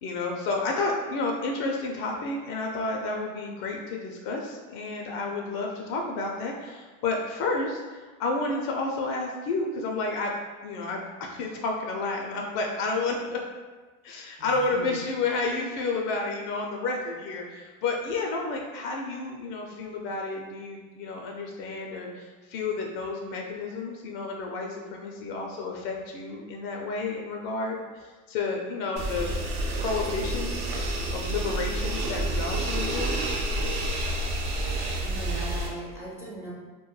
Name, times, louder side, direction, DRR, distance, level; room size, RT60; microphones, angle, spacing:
voice 1, 0.0-10.4 10.6-13.5 14.0-29.3 29.8-30.7 31.1-33.2, left 3 dB, 55° left, 0 dB, 0.4 m, -31 dB
voice 2, 14.4-15.0 35.0-36.5, right 2 dB, 5° right, -6 dB, 0.4 m, -39 dB
sound 1, 29.0-35.7, right 1 dB, 60° right, 0.7 m, -29 dB
2.2 x 2.1 x 3.0 m, 1.3 s
hypercardioid pair, 95°, 43 cm